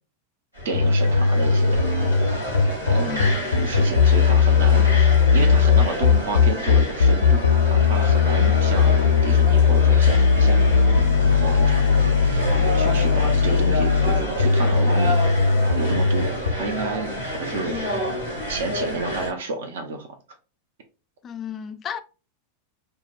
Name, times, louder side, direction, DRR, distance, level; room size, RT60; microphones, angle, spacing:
sound 1, 0.5-19.3, equal, 85° right, 1.7 m, -30 dB
voice 1, 0.6-1.9 2.9-15.2 15.7-17.8 18.5-20.1, right 3 dB, 60° right, 0.7 m, -31 dB
sound 2, 0.7-16.5, left 5 dB, 80° left, 0.6 m, -18 dB
voice 2, 3.0-3.4 21.2-22.0, left 8 dB, 25° left, 0.4 m, -33 dB
4.8 x 2.2 x 2.5 m
figure-of-eight pair, 90°, 0 cm